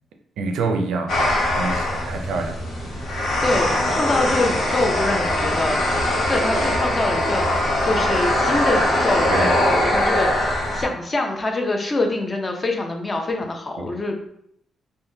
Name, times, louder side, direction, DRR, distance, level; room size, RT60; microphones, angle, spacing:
voice 1, 0.4-3.4 9.3-9.6 13.8-13.9, right 3 dB, 90° right, 5 dB, 0.4 m, -28 dB
sound 1, 1.1-10.8, left 1 dB, 80° left, 0.9 m, -21 dB
voice 2, 3.4-5.8 6.3-14.2, left 2 dB, 30° left, 3 dB, 0.6 m, -25 dB
3.4 x 2.1 x 2.7 m, 0.71 s
cardioid pair, 85°, 0 cm